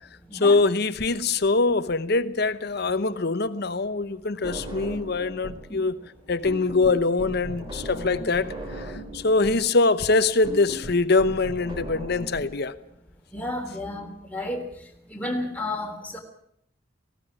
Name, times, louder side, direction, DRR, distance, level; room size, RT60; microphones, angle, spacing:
voice 1, 0.3-6.0 6.3-12.7, left 3 dB, 55° left, 0.9 m, -23 dB
sound 1, 4.4-5.7 6.0-12.4, equal, 25° right, 3.2 m, -37 dB
voice 2, 13.3-14.7 15.1-16.2, left 1 dB, 10° left, 3.3 m, -32 dB
18.0 x 17.0 x 8.6 m
head